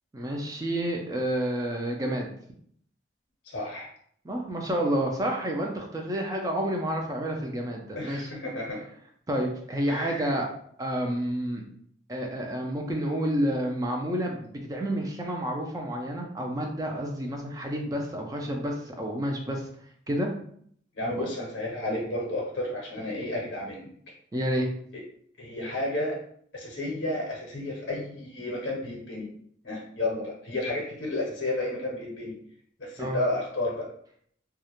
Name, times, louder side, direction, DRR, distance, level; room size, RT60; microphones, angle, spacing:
voice 1, 0.1-2.3 4.2-8.3 9.3-10.5 10.8-11.6 12.1-19.7 20.1-20.3 21.2-21.3 24.3-24.7 33.0-33.2, right 1 dB, 20° right, 1 dB, 0.3 m, -29 dB
voice 2, 3.4-3.9 8.0-8.8 9.9-10.4 21.0-23.9 25.4-26.2 26.5-29.3 29.6-32.3 32.8-33.9, left 1 dB, 60° left, -3 dB, 0.6 m, -32 dB
2.3 x 2.0 x 2.9 m, 0.64 s
head